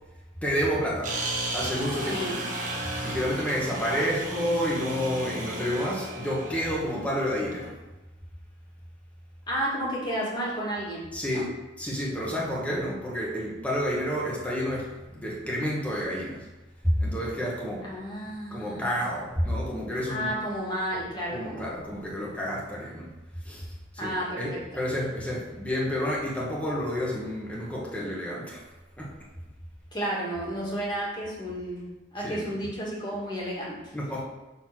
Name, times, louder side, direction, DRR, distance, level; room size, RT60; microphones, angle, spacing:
voice 1, 0.4-1.2 1.5-2.3 3.0-7.7 11.1-11.5 11.8-16.5 16.8-17.9 18.5-20.3 21.3-23.1 23.5-23.7 23.9-28.6 29.0-29.1 32.2-32.5 33.9-34.2, equal, 10° left, -4 dB, 1.8 m, -29 dB
sound 1, 1.0-7.7, right 1 dB, 50° right, 1.5 m, -34 dB
voice 2, 2.1-2.4 9.5-11.4 17.8-19.0 20.1-21.7 24.0-24.9 29.9-31.9 32.1-33.8, equal, 25° left, -5 dB, 2.3 m, -32 dB
6.6 x 4.3 x 6.2 m, 1.1 s
head